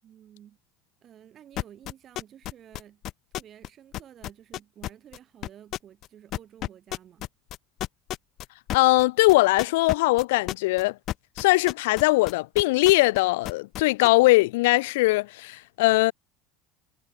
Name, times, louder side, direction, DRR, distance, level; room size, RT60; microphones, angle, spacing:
voice 1, 0.0-0.6 1.0-3.0 3.3-7.3, right 10 dB, 40° right, 7.6 m, -51 dB
sound 1, 1.6-3.7 3.9-5.2 5.4-6.1 6.3-13.2 13.4-14.1, left 14 dB, 55° left, 1.1 m, -32 dB
voice 2, 8.7-10.9 11.4-16.1, left 21 dB, 85° left, 0.7 m, -21 dB
supercardioid pair, 105°, 0 cm